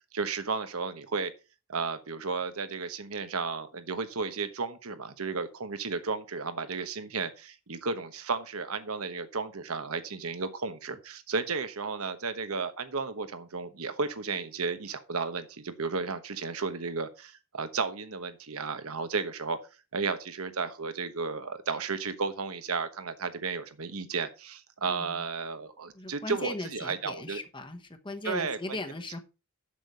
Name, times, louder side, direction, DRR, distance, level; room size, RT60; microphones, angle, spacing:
voice 1, 0.1-1.3 1.7-19.6 19.9-27.4 28.2-28.6, right 4 dB, 85° right, 1.1 m, -33 dB
voice 2, 24.9-25.2 25.9-29.2, left 2 dB, 20° left, 1.0 m, -38 dB
7.5 x 6.6 x 5.4 m
head